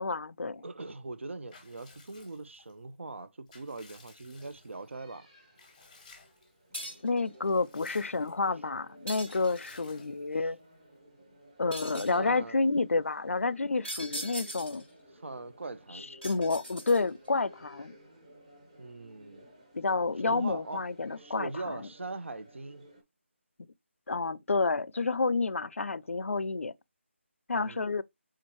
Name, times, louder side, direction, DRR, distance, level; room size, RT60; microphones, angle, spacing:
voice 1, 0.0-0.6 7.0-10.6 11.6-14.8 15.9-17.9 19.7-21.9 24.1-26.7 27.5-28.0, left 3 dB, 85° left, 0.4 m, -30 dB
voice 2, 0.6-5.3 10.4-10.5 11.9-12.6 15.2-16.1 18.8-19.5 20.2-20.8 21.2-22.8 27.5-28.0, right 3 dB, 70° right, 0.7 m, -41 dB
Water / Bathtub (filling or washing) / Liquid, 1.5-2.7 3.2-4.9 5.6-6.5 6.9-7.0 7.3-8.5 9.2-10.5, left 4 dB, 10° left, 0.8 m, -56 dB
sound 1, 4.3-23.0, right 1 dB, 30° right, 1.4 m, -57 dB
sound 2, 6.7-7.2 9.1-9.8 11.7-12.2 13.8-14.9 16.2-17.3, equal, 5° right, 0.3 m, -40 dB
4.4 x 3.7 x 3.0 m
figure-of-eight pair, 175°, 7 cm